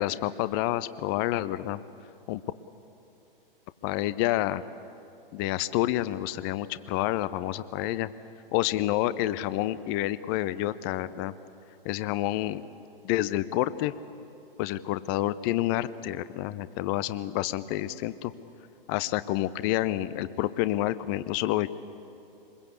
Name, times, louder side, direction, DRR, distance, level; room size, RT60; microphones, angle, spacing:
voice 1, 0.0-1.8 2.3-2.4 3.8-4.6 5.3-8.1 8.5-11.3 11.8-12.6 13.0-13.9 14.6-18.3 18.9-21.7, left 15 dB, 25° left, 16 dB, 0.6 m, -28 dB
25.5 x 21.5 x 8.3 m, 2.8 s
figure-of-eight pair, 110°, 29 cm